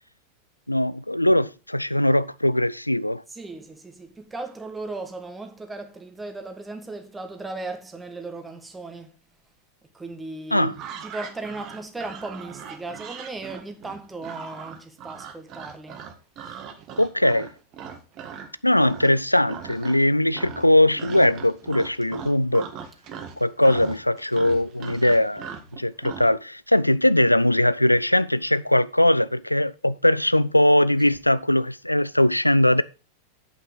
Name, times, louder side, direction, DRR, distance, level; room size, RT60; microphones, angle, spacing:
voice 1, 0.7-3.2 10.5-10.7 17.0-17.5 18.6-22.7 23.4-25.5 25.7-32.8, left 1 dB, 85° left, 0.3 m, -20 dB
voice 2, 3.3-9.2 9.9-10.7 11.0-16.0 16.4-16.6 23.7-23.8, right 2 dB, 10° right, 1.7 m, -37 dB
sound 1, 10.7-18.5 18.8-19.2 19.5-20.1 20.3-26.3, right 7 dB, 35° right, 1.8 m, -39 dB
8.3 x 5.9 x 6.2 m
figure-of-eight pair, 90°, 0 cm